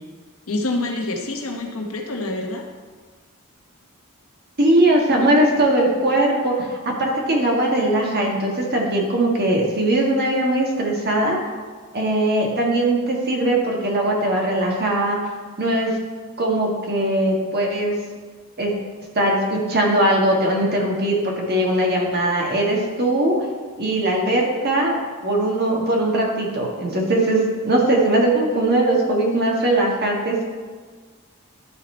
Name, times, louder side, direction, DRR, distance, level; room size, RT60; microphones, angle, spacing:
voice 1, 0.5-2.6, left 2 dB, 75° left, 1 dB, 1.2 m, -26 dB
voice 2, 4.6-11.4 11.9-15.2 15.6-15.9 16.4-18.0 18.6-18.7 19.2-23.4 23.8-25.0 25.2-30.5, right 1 dB, 50° right, -1 dB, 1.6 m, -20 dB
12.0 x 4.2 x 4.4 m, 1.5 s
head